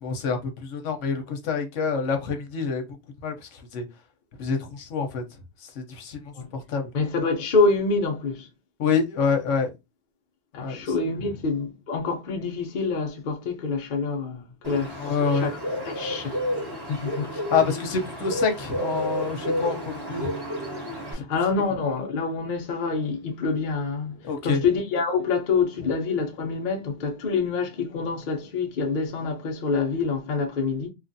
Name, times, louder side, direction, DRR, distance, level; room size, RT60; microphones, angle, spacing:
voice 1, 0.0-2.9 3.2-3.8 4.4-5.2 5.8-6.9 8.8-9.7 10.5-10.8 15.0-15.5 17.5-20.3 21.2-21.3 24.2-24.6, left 5 dB, 80° left, 1.0 m, -27 dB
voice 2, 6.9-8.5 10.5-15.1 15.3-15.6 15.8-16.4 16.9-17.3 21.1-30.9, left 4 dB, 50° left, 0.7 m, -26 dB
Bird, 14.6-21.1, equal, 20° right, 1.1 m, -31 dB
3.0 x 2.4 x 2.6 m
omnidirectional pair, 1.2 m